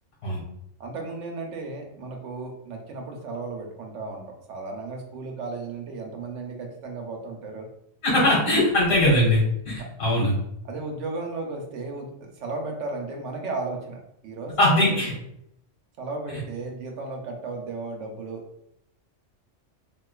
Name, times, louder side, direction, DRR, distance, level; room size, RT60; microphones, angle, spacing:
voice 1, 0.8-4.2 4.5-7.7 10.6-15.0 16.0-18.4, right 3 dB, 75° right, 1 dB, 1.0 m, -34 dB
voice 2, 8.0-10.4 14.6-15.1, left 1 dB, 55° left, -5 dB, 1.8 m, -21 dB
3.7 x 2.6 x 2.3 m, 0.77 s
omnidirectional pair, 1.3 m